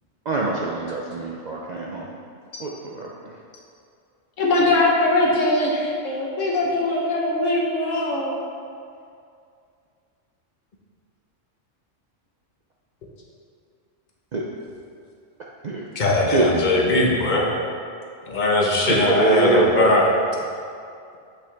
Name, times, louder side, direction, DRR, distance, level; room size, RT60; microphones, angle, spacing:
voice 1, 0.3-2.1 2.6-2.7 2.9-3.1 14.3-14.4 15.6-15.8 16.3-16.5 18.8-19.9, right 3 dB, 50° right, -3 dB, 0.5 m, -23 dB
voice 2, 4.4-8.3, left 2 dB, 80° left, -2 dB, 1.5 m, -21 dB
voice 3, 15.9-17.6 18.3-20.1, left 2 dB, 40° left, -2 dB, 1.1 m, -20 dB
7.8 x 6.1 x 3.4 m, 2.4 s
omnidirectional pair, 1.3 m